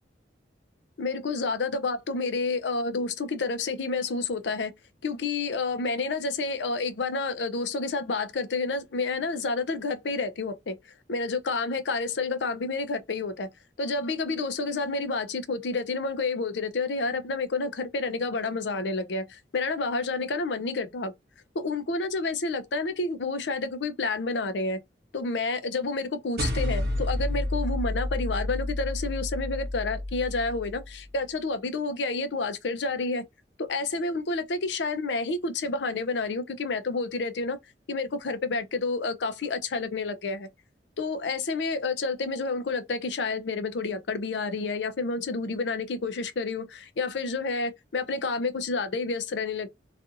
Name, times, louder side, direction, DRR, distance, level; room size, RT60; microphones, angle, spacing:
voice 1, 1.0-4.7 5.0-13.5 13.8-21.1 21.5-24.8 25.1-33.2 33.6-37.6 37.9-40.5 41.0-49.7, left 3 dB, 80° left, 0.5 m, -29 dB
sound 1, 26.4-31.0, left 1 dB, 60° right, 0.9 m, -30 dB
2.5 x 2.4 x 2.7 m
head